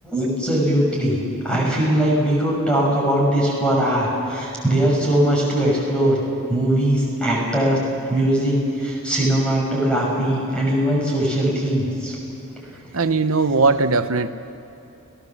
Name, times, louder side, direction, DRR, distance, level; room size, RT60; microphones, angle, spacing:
voice 1, 0.0-6.2 6.5-7.8 8.1-12.2, right 1 dB, 5° left, -4 dB, 6.0 m, -20 dB
voice 2, 12.9-14.3, right 3 dB, 80° right, 10 dB, 1.0 m, -19 dB
29.5 x 17.0 x 7.3 m, 2.8 s
head